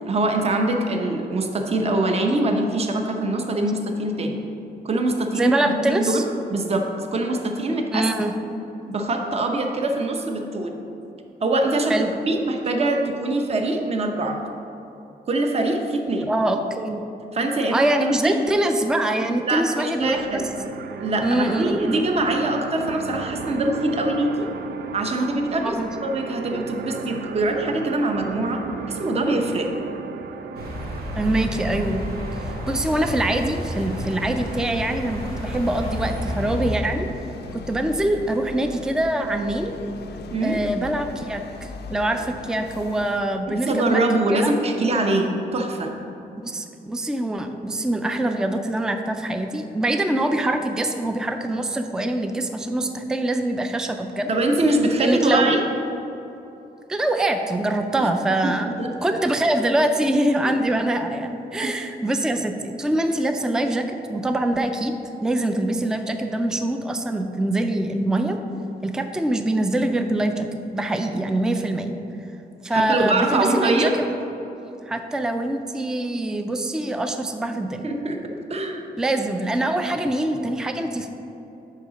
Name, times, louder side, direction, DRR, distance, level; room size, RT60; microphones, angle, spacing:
voice 1, 0.0-4.4 4.8-6.2 6.5-6.9 7.1-8.1 8.9-10.7 11.4-14.4 15.3-16.3 17.3-17.9 18.2-18.4 19.3-20.5 21.0-24.5 24.9-25.7 26.0-28.6 28.9-29.7 40.3-40.6 43.5-45.9 54.3-55.6 58.0-58.1 58.4-58.9 61.6-61.7 72.7-73.9 77.8-78.8, right 2 dB, 40° right, 3 dB, 0.7 m, -23 dB
voice 2, 5.3-6.2 7.9-8.3 11.9-12.1 16.3-17.0 17.7-20.4 21.2-22.0 25.6-25.9 31.2-32.1 32.4-37.1 37.5-39.7 40.4-44.0 44.3-44.5 46.4-54.3 55.0-55.5 56.9-58.7 59.0-64.9 65.2-68.4 68.8-70.5 70.7-71.9 72.6-74.1 74.9-77.8 79.0-81.1, right 1 dB, 5° right, 6 dB, 0.3 m, -24 dB
sound 1, 20.0-33.3, right 5 dB, 85° right, 0.5 m, -35 dB
sound 2, 30.5-36.7, equal, 70° right, 1.4 m, -31 dB
sound 3, 32.7-43.2, left 5 dB, 80° left, 0.5 m, -39 dB
6.6 x 4.8 x 6.3 m, 2.9 s
wide cardioid pair, 155°, 17 cm